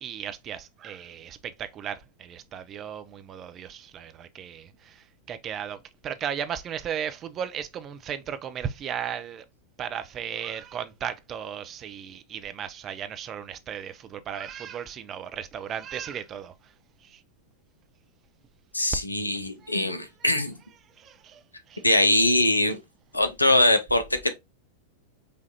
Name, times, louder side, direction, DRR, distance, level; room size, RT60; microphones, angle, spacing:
voice 1, 0.0-5.8 6.0-9.4 9.8-16.5 17.0-17.2 19.6-19.8 20.3-20.4 21.0-21.4 21.7-21.8, right 8 dB, 30° right, 0.5 m, -36 dB
voice 2, 18.7-20.5 21.8-22.8 23.1-24.4, left 1 dB, 85° left, 0.5 m, -22 dB
5.0 x 2.5 x 2.7 m
figure-of-eight pair, 90°, 0 cm